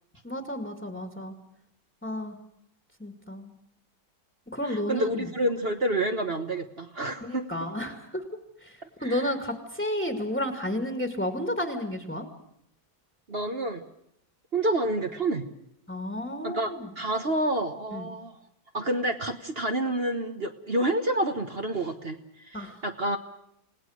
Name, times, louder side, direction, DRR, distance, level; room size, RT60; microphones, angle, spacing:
voice 1, 0.2-1.3 2.0-2.4 3.0-3.5 4.5-5.3 7.2-8.2 8.6-8.7 9.0-12.3 15.9-16.9 17.9-18.1 22.5-22.8, left 1 dB, 5° left, 6 dB, 2.0 m, -32 dB
voice 2, 4.6-7.7 9.0-9.3 13.3-13.8 14.5-15.4 16.4-18.4 18.7-22.2 22.5-23.2, right 1 dB, 40° right, 6 dB, 1.3 m, -28 dB
28.5 x 18.5 x 6.5 m, 0.75 s
omnidirectional pair, 1.8 m